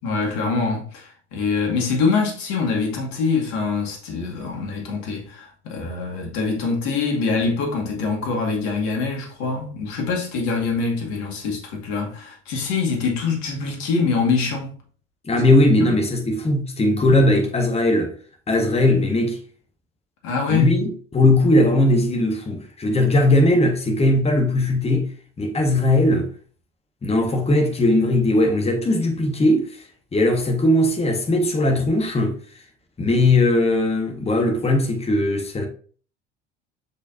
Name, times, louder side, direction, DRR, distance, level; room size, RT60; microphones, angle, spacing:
voice 1, 0.0-14.7 15.8-15.9 20.2-20.7, left 4 dB, 55° left, 2.3 m, -24 dB
voice 2, 15.2-18.2 18.5-19.4 20.5-25.1 25.4-26.3 27.0-29.8 30.1-32.4 33.0-35.7, left 1 dB, 15° left, 1.5 m, -19 dB
6.6 x 5.2 x 2.7 m
figure-of-eight pair, 65°, 35 cm